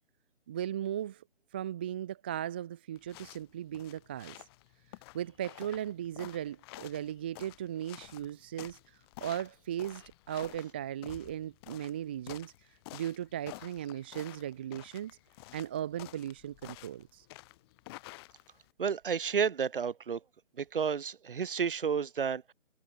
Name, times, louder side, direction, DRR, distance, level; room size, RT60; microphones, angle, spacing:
voice 1, 0.5-1.2 1.5-4.4 5.1-15.2 15.5-17.3, right 11 dB, 10° right, 0.8 m, -37 dB
sound 1, 2.9-18.7, left 21 dB, 20° left, 5.6 m, -51 dB
voice 2, 18.8-20.2 20.6-22.5, right 6 dB, 40° right, 2.4 m, -31 dB
figure-of-eight pair, 150°, 39 cm